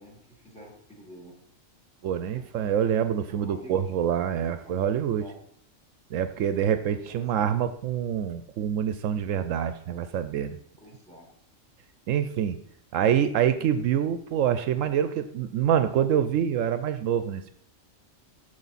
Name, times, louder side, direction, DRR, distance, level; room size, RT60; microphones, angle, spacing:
voice 1, 0.0-1.4 2.3-2.5 3.1-3.9 4.4-4.8 5.2-5.4 7.0-7.5 10.8-11.3, right 1 dB, 5° left, 0 dB, 2.5 m, -48 dB
voice 2, 2.0-5.2 6.1-10.6 12.1-12.6 12.9-17.5, right 9 dB, 75° right, 11 dB, 0.9 m, -26 dB
14.0 x 5.0 x 4.1 m, 0.65 s
omnidirectional pair, 1.4 m